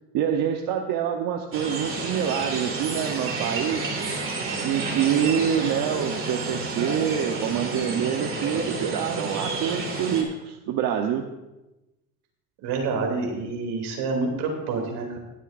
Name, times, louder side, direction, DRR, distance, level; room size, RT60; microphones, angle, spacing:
voice 1, 0.1-3.9 4.6-11.3, right 9 dB, 65° right, 3 dB, 1.0 m, -26 dB
sound 1, 1.5-10.2, right 3 dB, 35° right, 2.3 m, -30 dB
voice 2, 12.6-15.2, right 3 dB, 85° right, 1 dB, 2.9 m, -28 dB
21.0 x 8.2 x 2.6 m, 0.99 s
cardioid pair, 125°, 38 cm